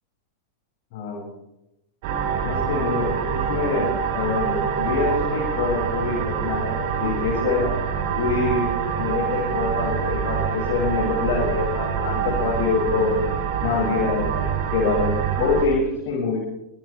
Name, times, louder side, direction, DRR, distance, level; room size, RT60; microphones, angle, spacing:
voice 1, 0.9-1.2 2.4-7.7 8.1-8.7 9.0-13.2 13.6-14.5 14.7-16.4, left 4 dB, 45° left, -2 dB, 7.5 m, -25 dB
sound 1, 2.0-15.7, right 7 dB, 50° right, 3.9 m, -25 dB
27.5 x 27.5 x 3.7 m, 0.89 s
figure-of-eight pair, 90°, 0 cm